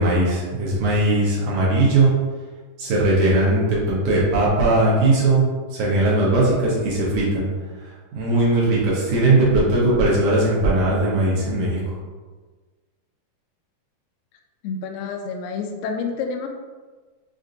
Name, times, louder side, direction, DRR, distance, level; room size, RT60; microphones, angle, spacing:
voice 1, 0.0-2.1 2.8-5.4 5.7-7.5 7.8-11.8, right 2 dB, 75° right, -6 dB, 1.8 m, -19 dB
voice 2, 14.6-16.5, left 5 dB, 85° left, 3 dB, 2.1 m, -28 dB
6.3 x 2.6 x 2.5 m, 1.4 s
omnidirectional pair, 4.5 m